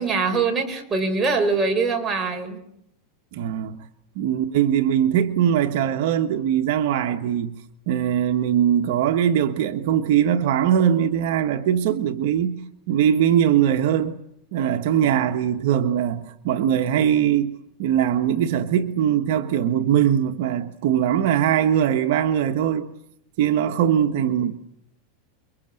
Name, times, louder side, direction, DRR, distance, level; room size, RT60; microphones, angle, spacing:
voice 1, 0.0-2.6, right 4 dB, 20° right, 5.3 m, -23 dB
voice 2, 3.3-3.8 4.1-7.6 7.9-12.6 12.9-14.2 14.5-22.9 23.4-24.5, right 9 dB, 65° right, 1.6 m, -21 dB
29.0 x 24.0 x 7.9 m
supercardioid pair, 140°, 0 cm